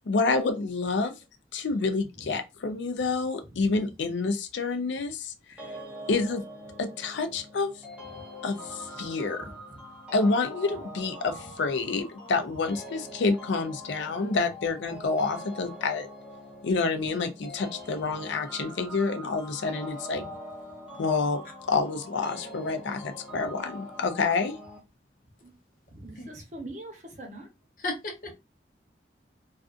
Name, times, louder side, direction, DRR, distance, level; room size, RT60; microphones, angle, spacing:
voice 1, 0.1-1.2 1.5-5.7 6.1-6.4 6.8-7.8 8.4-9.5 10.1-16.1 16.6-20.2 21.0-21.4 21.7-24.6, left 4 dB, 85° left, 0.5 m, -28 dB
sound 1, 5.6-24.8, equal, 5° right, 0.7 m, -43 dB
voice 2, 25.9-27.5, right 1 dB, 40° right, 0.8 m, -42 dB
voice 3, 27.8-28.3, left 2 dB, 50° left, 0.8 m, -34 dB
2.4 x 2.4 x 2.4 m
head